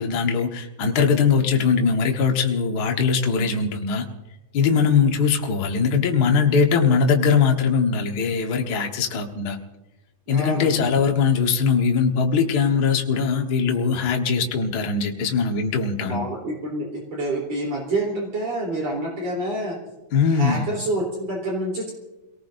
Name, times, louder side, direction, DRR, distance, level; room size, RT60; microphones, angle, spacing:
voice 1, 0.0-4.1 4.5-9.6 10.3-16.2 20.1-20.6, left 5 dB, 65° left, 2 dB, 1.0 m, -21 dB
voice 2, 10.3-10.9 16.0-19.8 20.3-21.9, right 1 dB, 50° right, -2 dB, 4.5 m, -27 dB
29.5 x 18.5 x 2.6 m, 1.0 s
omnidirectional pair, 3.9 m